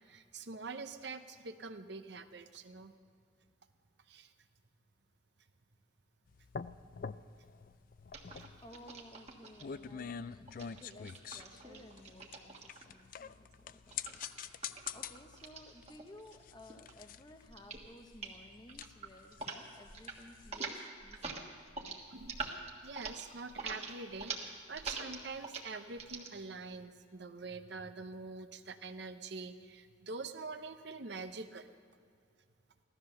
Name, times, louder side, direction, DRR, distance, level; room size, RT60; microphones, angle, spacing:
voice 1, 0.0-2.9 4.1-4.3 22.1-22.4 22.8-31.7, right 3 dB, 60° right, 9 dB, 0.8 m, -45 dB
sound 1, 6.3-20.7, left 7 dB, 45° left, 0.3 m, -47 dB
sound 2, 8.1-9.6 10.5-13.0 13.9-16.4 16.7-17.1 17.5-17.9 18.1-18.4 18.7-19.6 19.8-20.2 20.4-26.3, right 4 dB, 30° right, 1.5 m, -44 dB
voice 2, 8.6-21.6, left 1 dB, 20° left, 6 dB, 0.9 m, -56 dB
16.5 x 13.0 x 6.6 m, 2.3 s
head